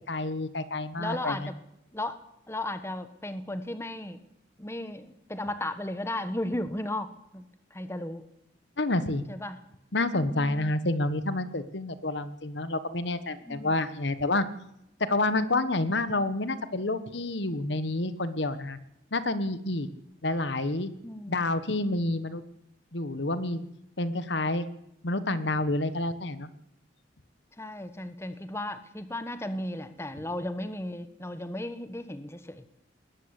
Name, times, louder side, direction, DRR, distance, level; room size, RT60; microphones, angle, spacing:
voice 1, 0.1-1.5 8.8-9.2 9.9-14.5 15.0-18.8 19.1-19.9 20.2-20.9 21.3-22.4 22.9-23.7 24.0-24.7 25.0-26.5, left 2 dB, 65° left, 13 dB, 1.4 m, -29 dB
voice 2, 1.0-1.6 1.9-2.2 2.5-4.2 4.6-7.4 7.7-8.2 9.3-9.6 10.3-10.7 13.4-13.8 21.0-21.4 27.6-32.6, left 1 dB, 15° left, 11 dB, 1.3 m, -35 dB
20.5 x 13.0 x 9.8 m, 0.79 s
head